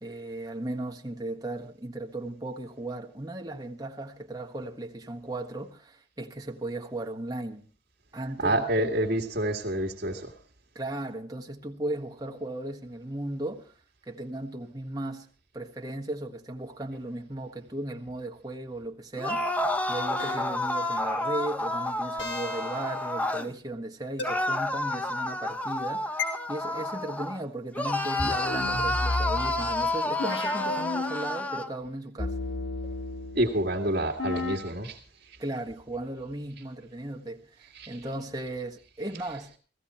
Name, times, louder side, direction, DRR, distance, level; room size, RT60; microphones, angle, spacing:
voice 1, 0.0-7.6 8.1-8.9 10.7-13.7 14.0-15.3 15.5-32.4 35.4-39.6, right 1 dB, 20° right, 1.5 m, -36 dB
voice 2, 8.4-10.3 33.3-35.0 35.3-35.4 37.7-38.0, right 1 dB, 55° right, 1.9 m, -28 dB
sound 1, 19.2-23.5 24.2-27.4 27.7-31.7, left 1 dB, 10° left, 0.7 m, -30 dB
sound 2, 20.2-20.9 22.2-23.0 24.2-24.3 26.2-26.3 28.2-31.6 32.2-33.6 34.2-34.6, left 3 dB, 85° left, 3.2 m, -33 dB
17.0 x 15.0 x 4.3 m
head